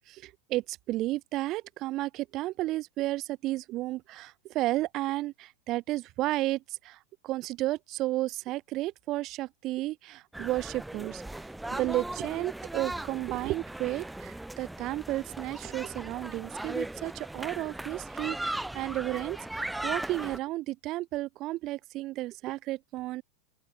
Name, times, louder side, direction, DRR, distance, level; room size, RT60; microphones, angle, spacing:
voice 1, 0.1-11.2 11.7-23.2, right 17 dB, 40° right, 0.9 m, -33 dB
sound 1, 10.3-20.4, right 1 dB, 5° right, 1.2 m, -38 dB
open air
hypercardioid pair, 95°, 0 cm